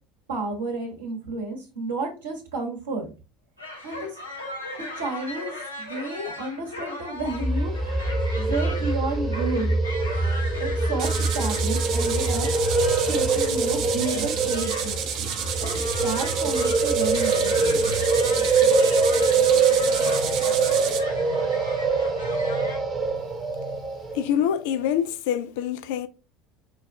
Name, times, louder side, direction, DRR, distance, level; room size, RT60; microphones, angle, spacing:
voice 1, 0.3-3.1 3.8-4.2 5.0-8.0 8.3-9.8 10.6-12.5 12.8-15.0 15.6-17.9, right 3 dB, 75° right, 1.3 m, -31 dB
sound 1, 3.6-22.8, left 2 dB, 85° left, 0.7 m, -38 dB
sound 2, 7.3-24.2, right 3 dB, 25° right, 1.1 m, -24 dB
sound 3, 11.0-21.0, right 8 dB, 50° right, 0.6 m, -31 dB
voice 2, 24.1-26.1, left 9 dB, 60° left, 0.4 m, -25 dB
5.1 x 2.4 x 3.2 m
figure-of-eight pair, 65°, 0 cm